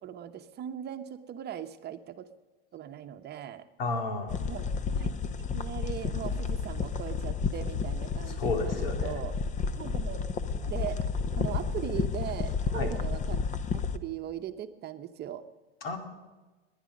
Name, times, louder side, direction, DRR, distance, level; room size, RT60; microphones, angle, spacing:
voice 1, 0.0-2.3 2.7-3.7 4.5-5.1 5.5-9.3 9.8-10.2 10.7-11.0 11.4-13.4 13.7-15.4, right 10 dB, 35° right, 8 dB, 0.9 m, -39 dB
voice 2, 3.8-4.4 8.3-9.2 12.7-12.9 15.8-16.0, left 3 dB, 75° left, 5 dB, 2.5 m, -32 dB
sound 1, 4.3-14.0, left 5 dB, 25° left, 0.8 m, -31 dB
20.5 x 10.0 x 5.3 m, 1.2 s
hypercardioid pair, 100°, 29 cm